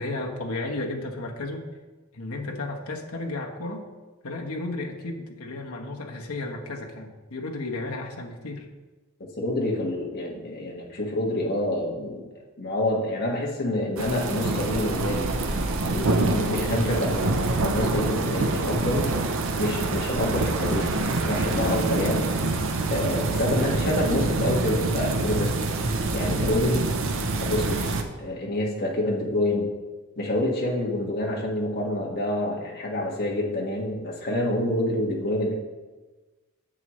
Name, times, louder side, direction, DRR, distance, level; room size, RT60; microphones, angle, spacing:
voice 1, 0.0-1.6 2.1-3.8 4.2-8.7, left 2 dB, 70° left, 0 dB, 1.2 m, -33 dB
voice 2, 9.4-12.3 12.6-15.6 15.9-19.1 19.6-22.3 22.9-25.5 25.8-26.9 27.4-29.7 30.2-35.6, left 1 dB, 45° left, -1 dB, 1.7 m, -27 dB
sound 1, 14.0-28.0, right 2 dB, 60° right, 0.8 m, -26 dB
10.5 x 7.6 x 3.2 m, 1.2 s
head